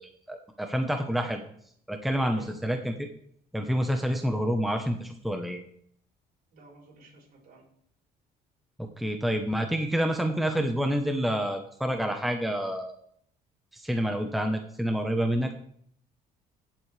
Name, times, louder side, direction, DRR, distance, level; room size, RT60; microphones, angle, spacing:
voice 1, 0.0-1.5 1.9-3.1 3.5-5.6 8.8-13.0 13.7-15.5, equal, ahead, 5 dB, 1.0 m, -28 dB
voice 2, 2.2-2.5 6.5-7.6, right 3 dB, 60° right, -1 dB, 5.3 m, -51 dB
16.5 x 7.5 x 3.4 m, 0.65 s
cardioid pair, 110°, 17 cm